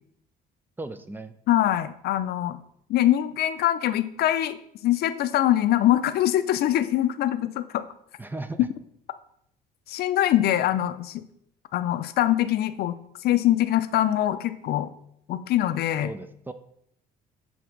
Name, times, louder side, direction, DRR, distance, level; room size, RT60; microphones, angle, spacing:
voice 1, 0.8-1.3 8.2-8.6 16.0-16.5, right 2 dB, 10° right, 11 dB, 0.5 m, -36 dB
voice 2, 1.5-2.6 2.9-4.6 4.8-7.8 9.9-11.2 11.7-12.9 13.2-14.9 15.3-16.1, left 13 dB, 70° left, 11 dB, 0.5 m, -23 dB
7.1 x 3.6 x 5.9 m, 0.72 s
cardioid pair, 110°, 17 cm